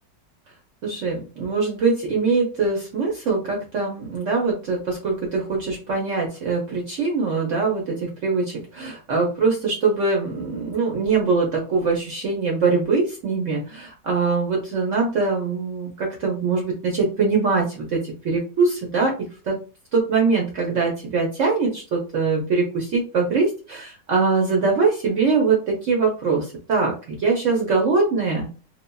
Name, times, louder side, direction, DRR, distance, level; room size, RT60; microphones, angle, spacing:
voice 1, 0.8-19.1 19.4-19.6 19.9-28.5, right 4 dB, 60° right, -1 dB, 0.8 m, -22 dB
3.3 x 2.2 x 2.2 m, 0.34 s
omnidirectional pair, 2.0 m